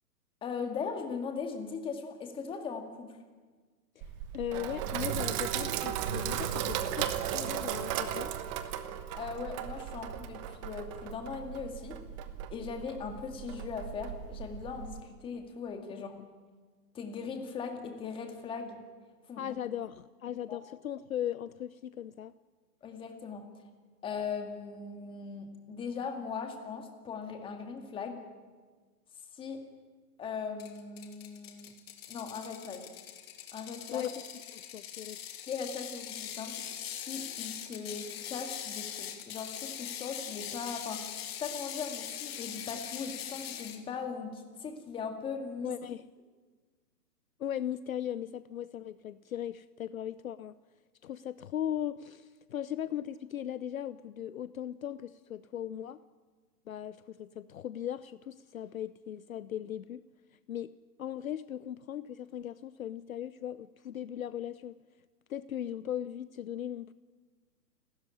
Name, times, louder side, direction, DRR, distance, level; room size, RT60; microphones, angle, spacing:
voice 1, 0.4-3.2 9.1-12.0 12.5-16.2 16.9-18.8 19.3-19.5 20.5-20.6 22.8-23.5 24.0-28.2 29.3-29.7 30.2-31.7 32.1-32.8 33.5-34.1 35.5-45.7, left 5 dB, 10° left, 5 dB, 2.0 m, -39 dB
Sink (filling or washing), 4.0-15.0, right 10 dB, 20° right, 1.1 m, -36 dB
voice 2, 4.3-8.3 15.9-16.0 19.4-22.3 33.9-34.1 34.5-35.2 45.6-46.1 47.4-50.5 51.0-56.0 56.7-60.0 60.5-60.7 61.0-64.8 65.3-66.9, left 10 dB, 55° left, 15 dB, 0.8 m, -38 dB
Ratchet pawl, 30.6-43.8, left 10 dB, 35° left, 2.6 m, -42 dB
29.0 x 13.0 x 10.0 m, 1.4 s
hypercardioid pair, 155°, 49 cm